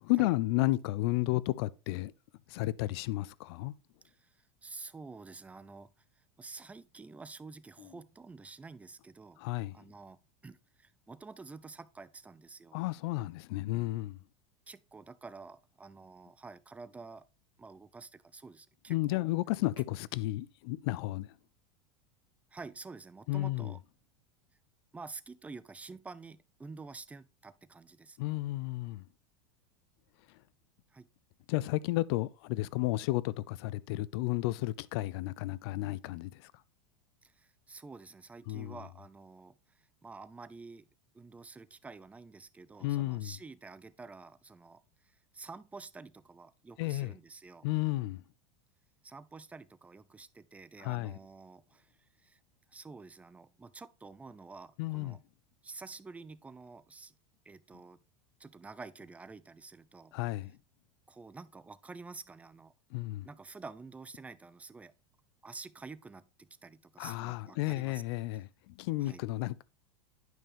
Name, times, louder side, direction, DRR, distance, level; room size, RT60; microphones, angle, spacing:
voice 1, 0.0-2.1 2.5-3.7 7.8-7.9 9.4-9.8 12.7-14.2 18.9-21.3 23.3-23.7 28.2-29.0 31.5-36.5 38.5-38.8 42.8-43.3 46.8-47.1 47.6-48.2 50.8-51.2 54.8-55.2 60.1-60.5 62.9-63.3 67.0-69.6, left 18 dB, 65° left, 0.4 m, -32 dB
voice 2, 4.0-12.8 14.7-17.2 17.6-19.3 22.5-23.8 24.9-28.2 30.9-31.1 37.2-40.9 41.1-47.7 49.0-52.4 52.7-55.2 55.6-57.1 57.4-58.0 58.4-60.1 61.1-62.7 63.2-64.9 65.4-68.0 69.0-69.2, right 4 dB, 10° right, 0.4 m, -49 dB
9.2 x 5.4 x 3.4 m
hypercardioid pair, 105°, 15 cm